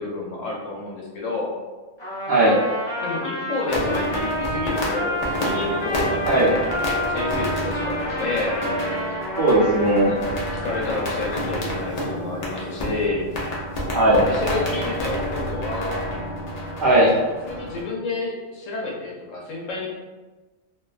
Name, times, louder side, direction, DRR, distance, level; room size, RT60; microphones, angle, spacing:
voice 1, 0.0-1.5 3.0-8.6 10.5-13.3 14.1-16.1 17.4-19.9, left 3 dB, 90° left, -2 dB, 1.0 m, -30 dB
Trumpet, 2.0-10.4, equal, 25° left, 0.7 m, -29 dB
sound 1, 3.7-17.8, equal, 60° left, 0.4 m, -29 dB
voice 2, 6.3-6.6 9.4-10.2 13.9-14.2 16.8-17.1, right 1 dB, 60° right, -6 dB, 0.6 m, -17 dB
2.5 x 2.2 x 2.3 m, 1.2 s
omnidirectional pair, 1.3 m